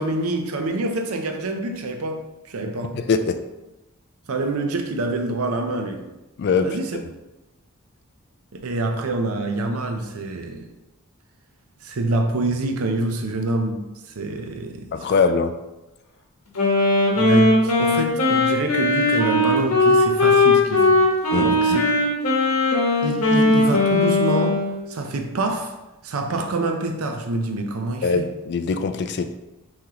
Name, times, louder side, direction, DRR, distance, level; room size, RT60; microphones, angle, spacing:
voice 1, 0.0-3.0 4.3-6.1 6.6-6.9 8.5-10.7 11.8-13.9 14.2-15.1 17.2-21.0 21.3-21.8 23.0-24.6 24.9-25.7 26.0-28.3, right 2 dB, 75° right, 5 dB, 0.6 m, -26 dB
voice 2, 2.9-3.4 6.4-6.7 14.9-15.5 21.3-21.8 28.0-29.3, left 5 dB, 50° left, 9 dB, 0.3 m, -22 dB
Wind instrument woodwind instrument, 16.6-24.8, left 2 dB, 85° left, 1.2 m, -18 dB
5.6 x 3.2 x 2.9 m, 1.0 s
head